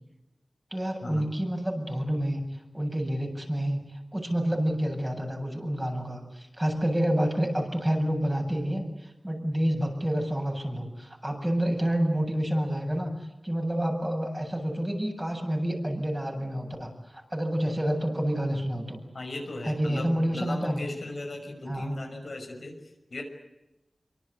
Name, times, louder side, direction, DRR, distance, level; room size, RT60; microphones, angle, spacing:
voice 1, 0.7-2.4 2.7-13.1 13.4-19.0 19.6-20.8 21.6-22.0, equal, 20° right, 2 dB, 7.8 m, -28 dB
voice 2, 19.1-22.7 23.1-23.2, left 2 dB, 75° left, 3 dB, 6.0 m, -37 dB
26.0 x 24.5 x 8.2 m, 0.97 s
wide cardioid pair, 55°, 0 cm